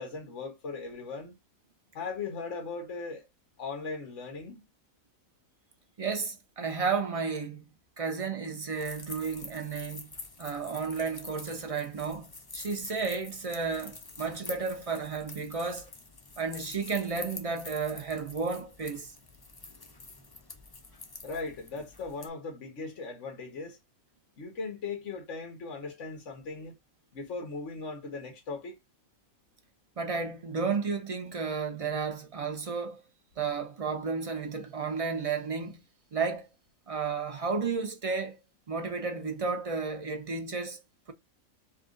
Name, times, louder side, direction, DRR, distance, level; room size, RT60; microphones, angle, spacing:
voice 1, 0.0-1.3 1.9-3.3 3.6-4.6 21.2-23.8 24.4-26.7 27.1-28.8, left 4 dB, 60° left, 1.6 m, -38 dB
voice 2, 6.0-7.6 8.0-10.1 10.4-15.9 16.4-19.1 30.0-33.0 33.4-35.8 36.1-36.5 36.9-38.4 38.7-40.8, right 5 dB, 40° right, 0.5 m, -32 dB
sound 1, 8.7-22.3, left 3 dB, 30° left, 0.4 m, -46 dB
4.1 x 2.5 x 3.7 m
omnidirectional pair, 1.4 m